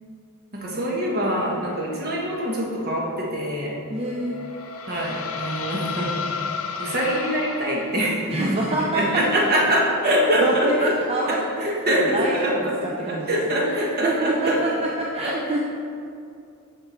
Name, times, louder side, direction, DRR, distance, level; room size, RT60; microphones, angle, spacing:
voice 1, 0.5-3.8 4.9-6.1 6.8-8.4 8.9-10.9 11.3-12.7 13.0-14.6 15.2-15.3, equal, 45° right, -3 dB, 1.4 m, -24 dB
voice 2, 3.9-4.4 8.3-9.4 10.1-10.2 10.4-13.4 13.7-15.6, right 2 dB, 30° right, -3 dB, 0.5 m, -26 dB
sound 1, 4.1-8.4, left 5 dB, 75° left, 0.6 m, -32 dB
6.4 x 5.8 x 4.5 m, 2.5 s
head